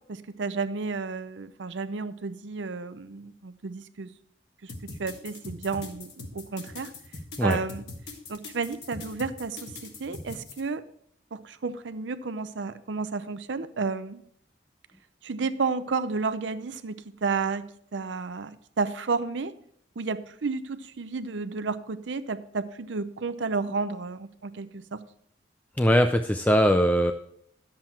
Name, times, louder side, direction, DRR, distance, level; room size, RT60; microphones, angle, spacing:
voice 1, 0.1-4.1 4.6-4.7 5.0-6.9 7.4-7.8 8.3-10.8 11.3-14.2 15.2-17.6 17.9-19.5 20.0-25.0, right 4 dB, 90° right, 12 dB, 0.6 m, -32 dB
sound 1, 4.7-10.6, left 3 dB, 65° left, 1.6 m, -41 dB
voice 2, 25.8-27.1, equal, 10° left, 6 dB, 0.4 m, -21 dB
10.5 x 7.5 x 4.4 m, 0.68 s
head